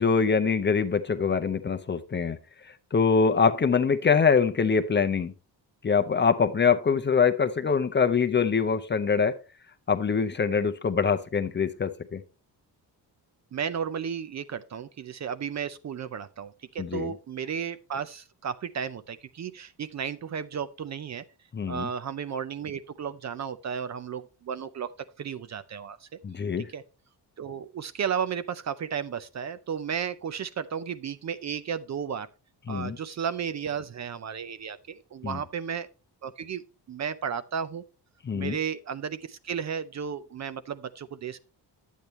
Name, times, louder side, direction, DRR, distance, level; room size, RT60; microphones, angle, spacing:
voice 1, 0.0-2.4 2.9-5.3 5.8-9.4 9.9-12.2 16.8-17.1 21.5-21.9 26.2-26.7 32.7-33.0 35.2-35.4 38.3-38.6, left 5 dB, 25° left, 0.6 m, -24 dB
voice 2, 13.5-21.2 21.7-24.9 25.2-26.1 26.6-26.8 27.4-32.3 32.7-35.9 36.2-37.8 38.3-41.4, right 7 dB, 45° right, 0.5 m, -34 dB
10.5 x 8.3 x 3.0 m
wide cardioid pair, 160°, 41 cm